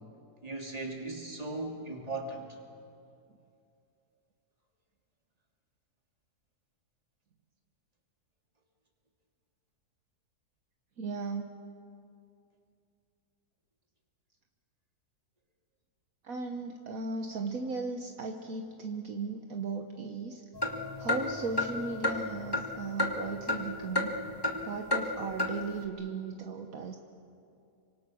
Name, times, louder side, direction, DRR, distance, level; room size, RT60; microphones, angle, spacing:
voice 1, 0.4-2.4, right 2 dB, 25° right, 1 dB, 2.9 m, -37 dB
voice 2, 11.0-11.6 16.2-20.4 21.0-24.1 24.6-27.0, right 4 dB, 65° right, 3 dB, 1.5 m, -36 dB
sound 1, 20.5-23.7 24.0-24.6 24.9-25.0 25.4-25.5, left 1 dB, 15° left, 1.6 m, -31 dB
28.0 x 25.0 x 6.3 m, 2.5 s
omnidirectional pair, 1.7 m